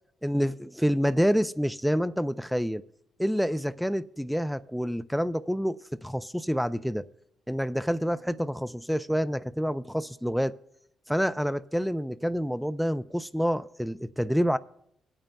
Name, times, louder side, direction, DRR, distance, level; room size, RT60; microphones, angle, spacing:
voice 1, 0.2-2.8 3.2-5.8 6.0-7.0 7.5-10.5 11.1-14.6, equal, ahead, 0.3 m, -27 dB
25.0 x 8.9 x 2.2 m
cardioid pair, 85°, 0 cm